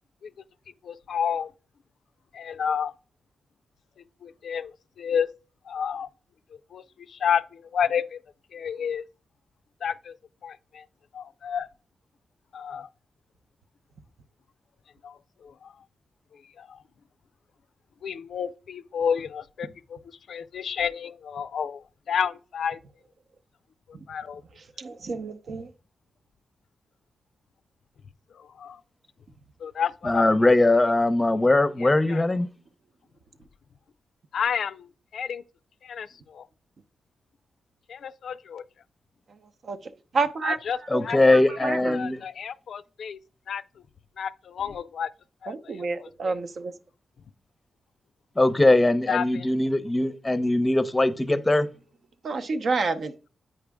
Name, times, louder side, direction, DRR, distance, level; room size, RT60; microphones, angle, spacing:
voice 1, 0.8-1.5 2.3-2.9 4.2-5.3 5.7-6.1 6.7-8.2 8.5-9.1 9.8-10.1 10.4-10.8 11.1-11.7 12.5-12.9 15.0-15.7 16.6-16.8 18.0-20.0 20.3-22.8 24.1-24.4 28.4-28.8 29.6-30.2 31.8-32.2 34.3-34.9 35.1-35.4 35.8-36.5 37.9-38.6 40.4-40.8 41.0-41.2 41.5-43.2 43.5-43.6 44.2-45.1 45.4-45.5 46.2-46.3 49.1-49.5, left 7 dB, 75° left, 0.4 m, -30 dB
voice 2, 24.6-25.7 39.6-40.6 40.9-42.0 45.5-46.7 52.2-53.1, right 4 dB, 60° right, 0.7 m, -30 dB
voice 3, 30.0-32.5 40.9-42.2 48.4-51.7, left 2 dB, 20° left, 0.6 m, -21 dB
8.6 x 5.0 x 3.5 m
cardioid pair, 85°, 0 cm